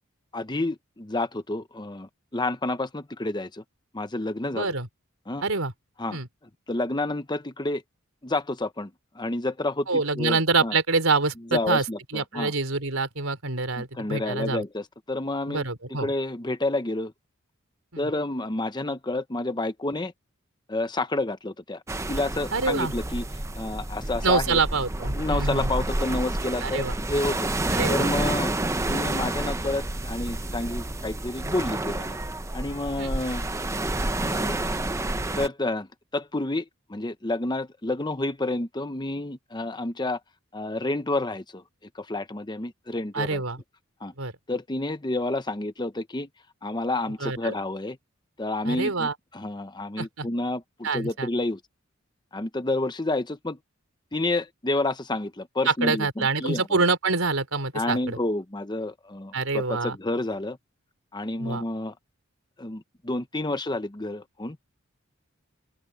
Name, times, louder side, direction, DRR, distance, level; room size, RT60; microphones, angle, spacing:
voice 1, 0.3-3.6 3.9-4.7 5.3-5.4 6.0-6.2 6.7-7.8 8.2-10.7 11.5-12.5 13.8-17.1 18.0-20.1 20.7-21.8 22.1-23.3 23.5-24.6 25.1-27.5 27.9-28.5 28.9-32.2 32.5-33.4 34.2-34.6 35.4-35.9 36.1-40.2 40.5-41.6 41.9-43.4 44.0-44.1 44.5-46.3 46.6-48.0 48.4-51.6 52.3-53.6 54.1-56.8 57.7-60.6 61.1-61.9 62.6-64.6, left 2 dB, 20° left, 0.9 m, -29 dB
voice 2, 4.5-4.9 5.4-5.7 6.1-6.3 9.9-11.8 12.1-14.6 15.5-16.1 22.5-22.9 24.2-25.7 26.6-26.9 27.7-28.4 33.0-33.1 43.1-43.6 44.2-44.3 47.2-47.6 48.6-49.1 50.0-50.3 50.8-51.3 55.7-58.2 59.3-60.0 61.4-61.6, right 4 dB, 80° right, 3.7 m, -26 dB
sound 1, 21.9-35.5, right 1 dB, 15° right, 0.7 m, -29 dB
open air
head